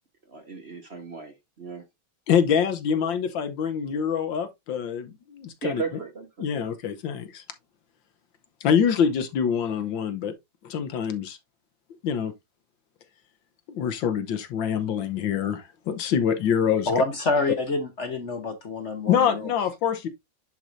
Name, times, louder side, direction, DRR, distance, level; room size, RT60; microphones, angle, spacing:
voice 1, 0.3-1.8 5.6-6.5, right 5 dB, 40° right, 1.2 m, -35 dB
voice 2, 2.3-6.0 6.4-7.4 8.6-10.3 10.6-11.4 12.0-12.3 13.7-16.9 19.1-20.1, left 7 dB, 75° left, 1.7 m, -25 dB
voice 3, 16.9-19.5, left 3 dB, 45° left, 1.1 m, -27 dB
10.5 x 4.7 x 2.6 m
omnidirectional pair, 2.1 m